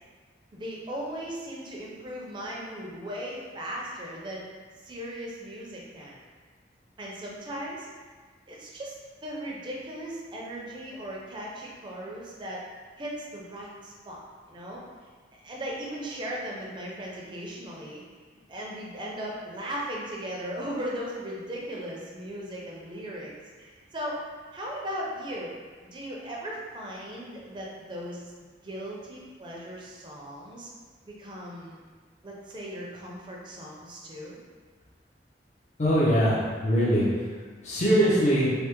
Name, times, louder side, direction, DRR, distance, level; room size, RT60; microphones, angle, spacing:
voice 1, 0.5-4.5 4.8-6.2 7.0-7.9 8.5-12.6 13.0-14.2 14.5-14.8 15.4-18.0 18.5-23.3 23.6-24.2 24.5-25.5 25.8-28.3 28.6-30.7 31.0-31.8 32.2-34.4, equal, 25° right, -3 dB, 0.5 m, -37 dB
voice 2, 35.8-37.3 37.6-38.5, equal, 40° left, -7 dB, 0.5 m, -22 dB
3.3 x 2.0 x 2.9 m, 1.5 s
head